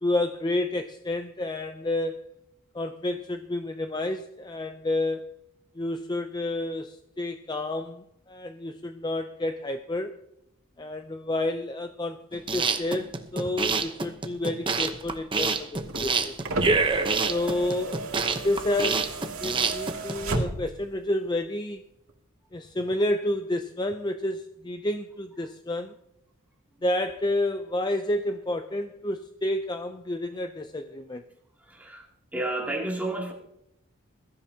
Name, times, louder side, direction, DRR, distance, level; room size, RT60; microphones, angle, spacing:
voice 1, 0.0-2.3 2.7-5.3 5.7-10.2 10.8-16.3 17.3-19.1 19.4-21.8 22.5-25.9 26.8-31.3, left 1 dB, 20° left, 8 dB, 0.5 m, -30 dB
sound 1, 12.3-20.4, right 4 dB, 25° right, 0.8 m, -27 dB
sound 2, 15.7-20.9 22.1-22.2, right 2 dB, 80° right, 2.4 m, -34 dB
voice 2, 31.6-32.1 32.3-33.3, right 2 dB, 5° right, -2 dB, 2.6 m, -31 dB
21.5 x 13.5 x 2.8 m, 0.81 s
head